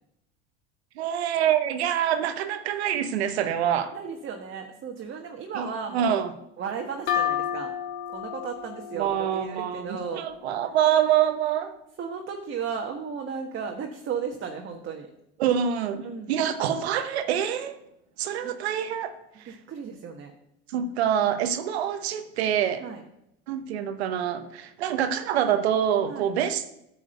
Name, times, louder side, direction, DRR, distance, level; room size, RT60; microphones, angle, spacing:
voice 1, 1.0-3.9 5.5-5.7 5.9-6.3 8.9-11.7 15.4-17.8 18.2-19.6 20.7-22.8 23.5-26.6, right 9 dB, 85° right, 9 dB, 1.0 m, -26 dB
voice 2, 3.9-6.2 6.6-7.7 8.1-10.3 12.0-15.1 16.0-16.5 18.4-18.5 19.4-20.3 20.8-20.9 22.8-23.0 26.1-26.3, right 6 dB, 40° right, 2 dB, 1.4 m, -35 dB
sound 1, 7.1-10.6, left 10 dB, 90° left, 1.6 m, -32 dB
9.3 x 4.9 x 7.7 m, 0.81 s
supercardioid pair, 95°, 31 cm